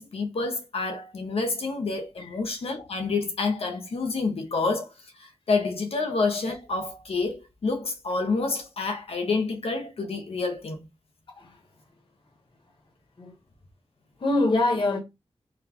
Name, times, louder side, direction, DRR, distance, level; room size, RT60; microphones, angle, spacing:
voice 1, 0.0-4.9 5.2-10.8, left 3 dB, 70° left, 0.7 m, -28 dB
voice 2, 11.3-11.6 13.2-13.3 14.2-15.0, left 2 dB, 50° left, 1.1 m, -25 dB
4.0 x 2.3 x 2.8 m
wide cardioid pair, 95°, 10 cm